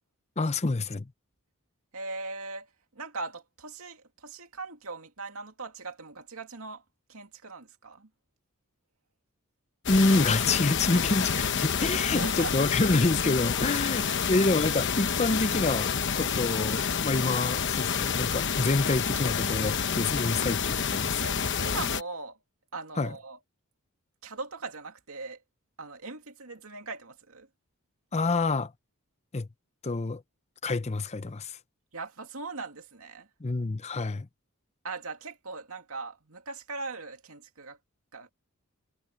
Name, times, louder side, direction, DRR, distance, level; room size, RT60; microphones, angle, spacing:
voice 1, 0.4-1.1 9.9-21.3 23.0-23.1 28.1-28.7 29.3-29.5 29.8-30.2 30.6-31.6 33.4-34.3, left 3 dB, 30° left, 0.6 m, -27 dB
voice 2, 1.9-6.8 7.1-8.1 11.9-12.7 14.0-14.3 21.2-22.4 22.7-23.4 24.2-25.4 25.8-27.5 31.9-33.3 34.8-37.8 38.1-38.3, right 3 dB, 70° right, 2.6 m, -40 dB
sound 1, 9.9-22.0, left 6 dB, 55° left, 1.0 m, -28 dB
head